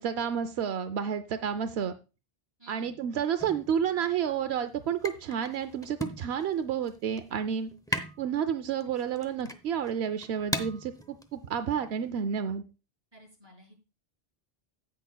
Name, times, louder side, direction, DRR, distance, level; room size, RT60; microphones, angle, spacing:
voice 1, 0.0-1.9 2.7-12.6, right 8 dB, 85° right, 10 dB, 0.9 m, -30 dB
voice 2, 2.6-3.0 13.1-13.8, equal, 25° right, -3 dB, 5.2 m, -54 dB
sound 1, 3.4-12.2, left 1 dB, 5° left, 0.6 m, -40 dB
17.0 x 6.1 x 2.3 m, 0.30 s
omnidirectional pair, 1.1 m